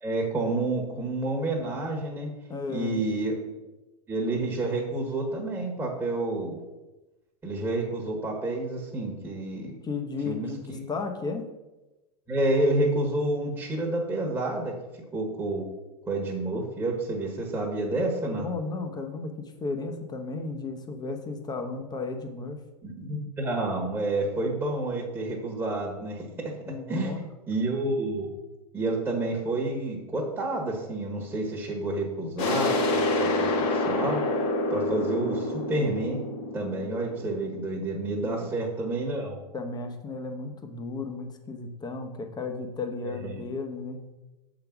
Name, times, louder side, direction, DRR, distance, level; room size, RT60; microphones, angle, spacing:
voice 1, 0.0-2.3 2.7-3.6 4.1-6.6 7.4-9.7 10.2-10.8 12.3-14.7 15.1-15.7 16.1-18.5 22.8-26.5 26.9-27.1 27.5-28.3 28.7-34.2 34.7-36.2 36.5-39.4 43.1-43.4, right 2 dB, 10° right, -2 dB, 1.4 m, -29 dB
voice 2, 2.5-3.0 9.8-11.5 18.3-22.6 26.6-27.2 38.2-38.5 39.5-44.0, left 3 dB, 20° left, 5 dB, 1.0 m, -34 dB
sound 1, 32.4-37.9, left 2 dB, 55° left, 1.7 m, -27 dB
6.5 x 4.0 x 5.9 m, 1.1 s
hypercardioid pair, 100°, 20 cm